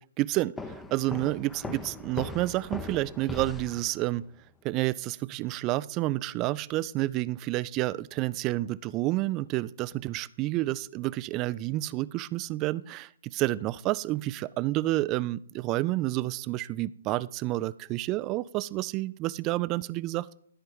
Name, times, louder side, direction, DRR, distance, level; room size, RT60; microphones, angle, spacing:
voice 1, 0.2-4.3 4.6-20.4, right 17 dB, 25° right, 19 dB, 0.3 m, -29 dB
sound 1, 0.6-4.3, left 3 dB, 10° left, 0.6 m, -39 dB
13.5 x 4.5 x 5.4 m, 0.62 s
figure-of-eight pair, 125°, 0 cm